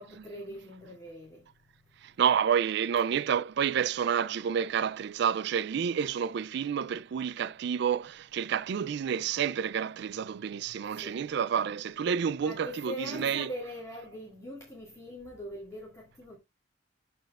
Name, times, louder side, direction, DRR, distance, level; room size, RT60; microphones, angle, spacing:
voice 1, 0.0-1.4 11.0-11.2 12.4-16.4, equal, 15° left, 2.0 m, -41 dB
voice 2, 2.0-13.5, right 8 dB, 60° right, 0.3 m, -29 dB
13.0 x 4.3 x 2.4 m
head